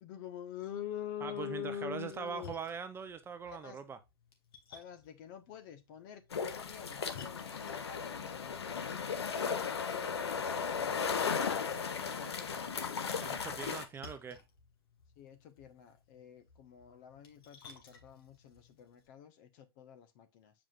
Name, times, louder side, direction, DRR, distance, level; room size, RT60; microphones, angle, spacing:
voice 1, 0.0-2.6 3.4-3.8 4.7-13.0 15.2-20.5, left 9 dB, 50° left, 1.4 m, -47 dB
voice 2, 1.2-4.0 13.2-14.4, right 6 dB, 15° right, 0.7 m, -42 dB
Splash splatter, 2.0-19.1, left 6 dB, 70° left, 2.4 m, -59 dB
sound 1, 6.3-13.8, left 6 dB, 85° left, 1.2 m, -36 dB
7.6 x 5.1 x 2.5 m
hypercardioid pair, 120°, 13 cm